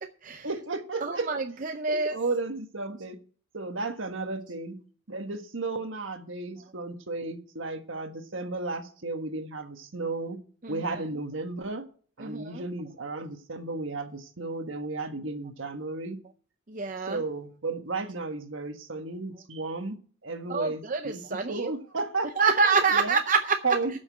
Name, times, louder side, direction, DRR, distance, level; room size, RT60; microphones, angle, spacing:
voice 1, 0.4-1.3 1.9-3.2 3.5-4.8 5.1-10.4 10.7-11.8 12.2-16.2 17.1-20.0 20.2-21.2 21.5-22.5 22.9-23.2 23.6-23.9, right 3 dB, 65° right, 1.5 m, -33 dB
voice 2, 1.0-2.2 10.6-10.9 12.2-12.6 16.7-17.2 20.5-21.7 22.4-23.6, right 4 dB, 40° right, 0.6 m, -27 dB
12.0 x 6.3 x 6.2 m
head